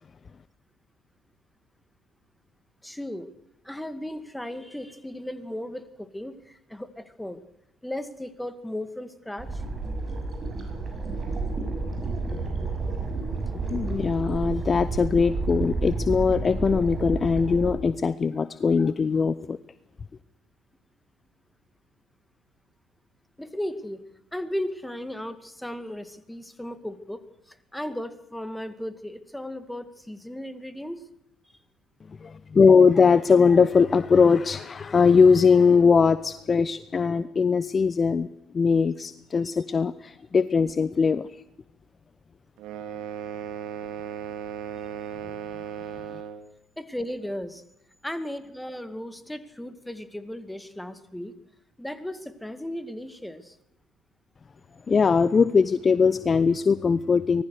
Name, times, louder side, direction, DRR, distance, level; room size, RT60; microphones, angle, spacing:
voice 1, 2.8-3.3 3.6-7.4 7.8-9.6 23.4-24.0 24.3-31.1 44.8-44.9 46.8-47.6 48.0-51.4 51.8-53.6, left 1 dB, 5° left, 12 dB, 2.3 m, -36 dB
sound 1, 9.4-17.7, right 3 dB, 35° right, 6.3 m, -30 dB
voice 2, 13.7-19.6 32.2-38.3 38.5-41.3 54.9-57.4, left 5 dB, 35° left, 16 dB, 0.7 m, -20 dB
sound 2, 42.6-46.5, right 8 dB, 60° right, 2.5 m, -36 dB
24.5 x 19.0 x 6.6 m, 0.78 s
figure-of-eight pair, 50°, 0 cm